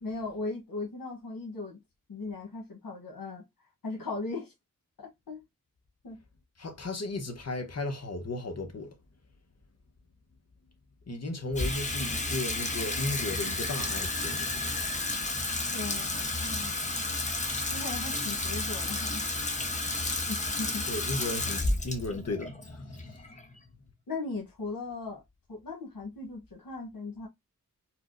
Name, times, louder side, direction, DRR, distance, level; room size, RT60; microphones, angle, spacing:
voice 1, 0.0-1.8 2.1-3.4 3.8-4.5 5.0-5.4 6.0-6.2 15.7-17.0 17.7-19.3 20.3-20.9 24.1-25.2 25.5-27.3, left 3 dB, 85° left, 1.1 m, -38 dB
voice 2, 6.6-8.9 11.1-14.7 20.9-22.5, left 2 dB, 50° left, 0.9 m, -35 dB
Water tap faucet / Sink (filling or washing), 11.5-23.9, left 2 dB, 20° left, 0.5 m, -32 dB
4.4 x 2.1 x 2.5 m
wide cardioid pair, 95°, 33 cm